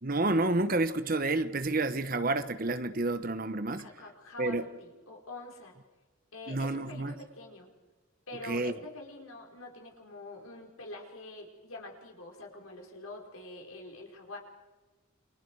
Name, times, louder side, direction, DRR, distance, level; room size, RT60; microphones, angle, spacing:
voice 1, 0.0-3.8 4.4-4.6 6.5-7.1 8.5-8.7, right 2 dB, 40° right, 11 dB, 1.2 m, -29 dB
voice 2, 3.7-5.8 6.3-7.7 8.3-14.4, left 2 dB, 85° left, 1 dB, 5.0 m, -45 dB
29.0 x 25.0 x 4.8 m, 1.3 s
head